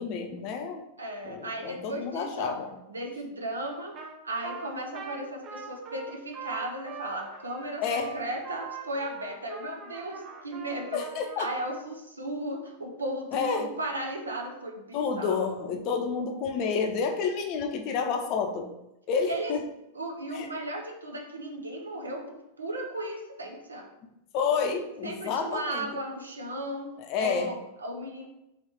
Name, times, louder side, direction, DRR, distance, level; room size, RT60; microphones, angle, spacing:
voice 1, 0.0-0.8 1.2-2.8 7.8-8.2 10.9-11.5 13.3-13.7 14.9-18.7 19.1-19.6 20.3-20.5 24.3-25.9 27.0-27.5, left 5 dB, 40° left, 4 dB, 0.6 m, -29 dB
voice 2, 1.0-2.6 2.9-3.9 4.2-11.1 11.4-15.6 19.3-19.5 19.9-23.9 25.0-28.3, right 1 dB, 75° right, 2 dB, 0.7 m, -35 dB
Trumpet, 3.9-4.2 4.4-11.8, right 6 dB, 35° right, 0.6 m, -43 dB
3.2 x 3.1 x 4.2 m, 0.87 s
figure-of-eight pair, 90°, 0 cm